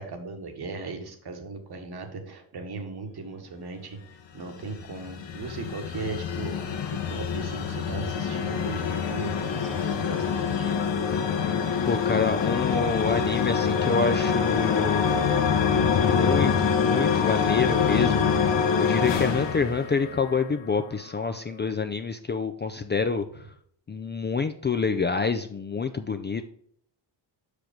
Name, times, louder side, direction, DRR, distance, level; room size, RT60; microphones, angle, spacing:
voice 1, 0.0-4.0 4.3-6.8 7.1-10.8 11.1-11.2, right 3 dB, 55° right, 4 dB, 1.6 m, -37 dB
sound 1, 4.4-20.5, left 6 dB, 65° left, 1.3 m, -25 dB
voice 2, 11.9-15.1 15.8-18.3 18.8-23.2 23.9-26.5, left 5 dB, 25° left, 8 dB, 0.4 m, -27 dB
6.0 x 5.0 x 5.1 m, 0.64 s
cardioid pair, 105°, 46 cm